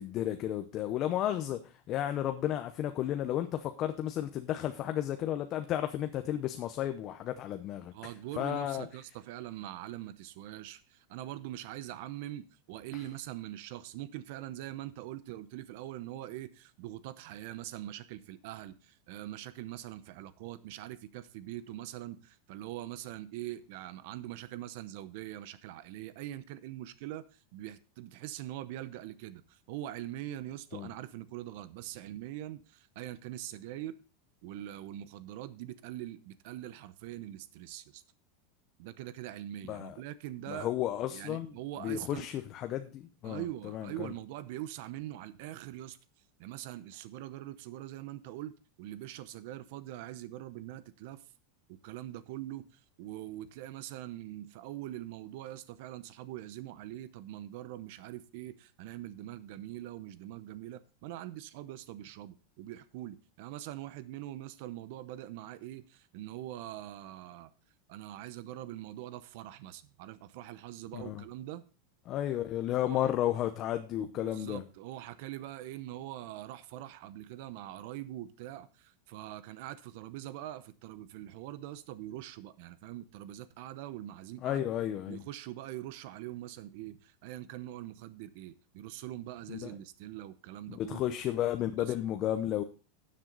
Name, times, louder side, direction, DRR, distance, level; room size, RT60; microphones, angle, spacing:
voice 1, 0.0-1.6 1.9-7.9 8.4-8.9 30.7-30.9 39.7-39.9 40.5-41.5 41.8-44.1 70.9-71.2 72.1-74.6 84.4-85.2 89.5-89.7 90.7-92.6, left 12 dB, 35° left, 0.7 m, -33 dB
voice 2, 7.9-34.0 34.4-38.0 38.8-40.7 41.1-42.3 43.2-46.0 46.4-51.2 51.7-67.5 67.9-71.6 72.9-73.1 74.1-84.6 85.1-91.2 91.8-91.9, right 14 dB, 60° right, 0.7 m, -43 dB
12.5 x 7.6 x 4.0 m
supercardioid pair, 150°, 0 cm